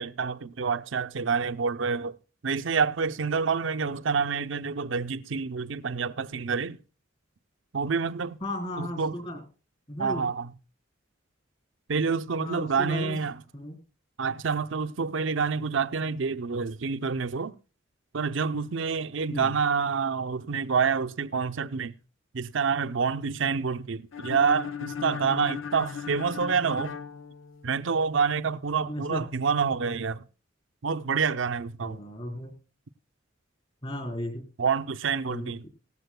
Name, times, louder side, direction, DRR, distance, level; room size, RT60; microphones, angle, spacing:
voice 1, 0.0-2.2 2.4-6.8 7.7-8.4 8.8-9.1 10.0-10.5 11.9-13.4 14.2-17.6 18.1-21.9 22.3-27.0 27.6-30.2 30.8-32.0 34.6-35.7, right 5 dB, 75° right, 0.7 m, -27 dB
voice 2, 8.4-9.4 9.9-10.3 12.4-13.2 13.5-13.8 19.3-19.5 28.9-29.2 31.8-32.5 33.8-34.5 35.3-35.7, left 1 dB, 30° left, 3.7 m, -35 dB
sound 1, 24.1-28.0, left 7 dB, 80° left, 0.9 m, -37 dB
17.5 x 15.0 x 2.2 m
head